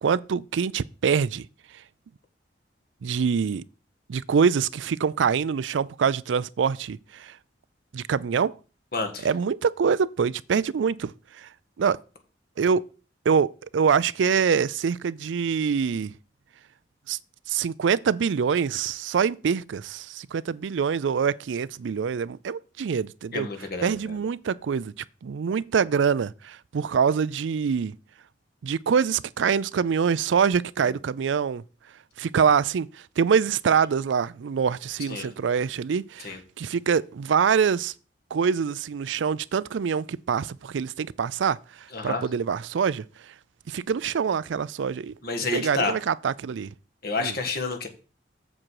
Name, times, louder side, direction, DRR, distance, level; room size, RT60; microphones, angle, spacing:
voice 1, 0.0-1.5 3.0-3.6 4.1-7.4 7.9-8.5 9.2-11.5 11.8-12.0 12.6-12.8 13.3-16.1 17.1-17.2 17.5-23.5 23.8-24.9 25.2-27.9 28.6-31.6 32.2-32.9 33.2-37.9 38.3-41.6 42.0-43.0 43.7-45.1 45.5-46.7 47.2-47.3, right 6 dB, 80° right, 0.4 m, -25 dB
voice 2, 8.9-9.3 23.3-24.2 30.8-31.0 35.1-35.3 36.2-36.4 41.9-42.2 45.2-45.9 47.0-47.9, left 3 dB, 55° left, 1.8 m, -29 dB
7.5 x 7.4 x 4.7 m
head